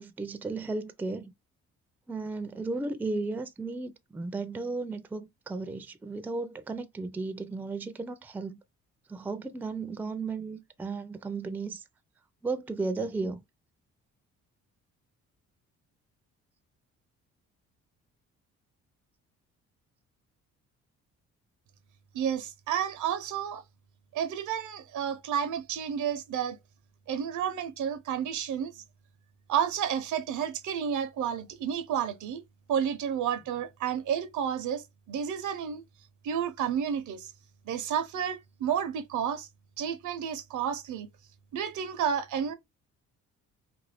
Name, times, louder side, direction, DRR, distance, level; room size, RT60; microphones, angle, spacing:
voice 1, 0.0-1.3 2.1-8.6 9.1-11.8 12.4-13.4, right 3 dB, 5° right, 0.3 m, -34 dB
voice 2, 22.1-23.6 24.1-26.6 27.1-28.8 29.5-32.4 32.7-35.8 36.2-37.3 37.7-39.5 39.8-41.1 41.5-42.5, right 8 dB, 75° right, 0.7 m, -31 dB
2.6 x 2.6 x 3.3 m
cardioid pair, 90°, 30 cm